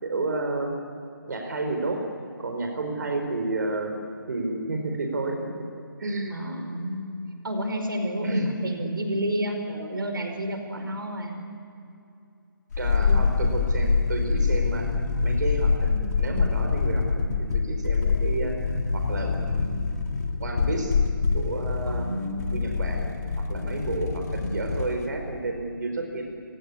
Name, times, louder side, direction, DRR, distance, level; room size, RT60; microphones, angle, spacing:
voice 1, 0.0-0.8 1.3-2.0 2.4-4.0 4.3-5.6 6.0-6.4 8.2-8.5 12.8-14.9 15.2-19.8 20.4-21.0 21.3-22.1 22.5-26.2, right 2 dB, 55° right, 3 dB, 4.6 m, -31 dB
voice 2, 6.3-7.0 7.4-11.4 13.0-13.3 21.9-22.6, equal, 75° right, 5 dB, 4.9 m, -30 dB
sound 1, 12.7-25.1 25.4-25.5, left 4 dB, 50° left, 2.6 m, -25 dB
30.0 x 18.5 x 10.0 m, 2.6 s
figure-of-eight pair, 160°, 12 cm